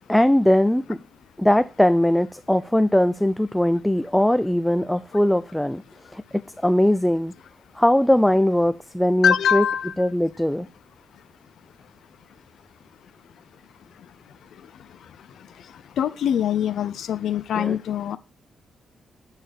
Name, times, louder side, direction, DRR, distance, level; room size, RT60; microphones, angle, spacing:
voice 1, 0.1-1.0 1.4-5.8 6.1-7.3 7.8-9.6 10.0-10.7 17.6-17.8, left 1 dB, 5° left, 0.4 m, -20 dB
voice 2, 9.2-9.9 16.0-18.2, left 9 dB, 75° left, 0.6 m, -23 dB
8.9 x 4.1 x 6.8 m
cardioid pair, 135°, 0 cm